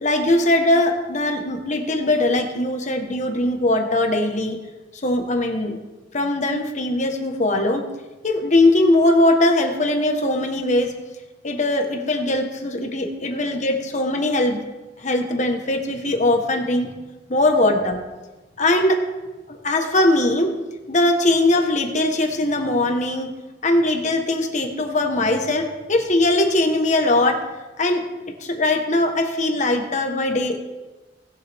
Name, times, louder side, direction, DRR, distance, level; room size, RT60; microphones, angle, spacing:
voice 1, 0.0-4.6 5.0-5.8 6.1-7.9 8.2-11.0 11.4-14.6 15.0-17.0 17.3-18.0 18.6-19.0 19.5-20.5 20.9-23.3 23.6-27.4 27.8-28.0 28.4-30.6, left 1 dB, 45° left, 4 dB, 1.4 m, -20 dB
19.0 x 7.5 x 3.6 m, 1.1 s
head